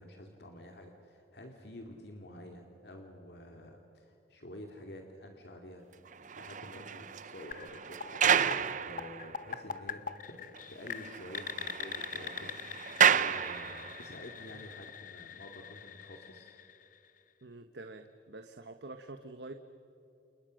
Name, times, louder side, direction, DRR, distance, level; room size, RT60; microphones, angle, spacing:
voice 1, 0.0-5.9 6.3-8.3 8.8-16.5, left 1 dB, 65° left, 3 dB, 2.5 m, -49 dB
sound 1, 6.1-9.6 10.1-10.2 10.5-10.6 10.9-14.2, right 8 dB, 45° right, 0.7 m, -31 dB
sound 2, 7.5-17.3, left 7 dB, 50° left, 1.0 m, -44 dB
voice 2, 17.4-19.5, right 2 dB, 70° right, 7 dB, 1.2 m, -46 dB
29.5 x 29.0 x 6.5 m, 2.9 s
head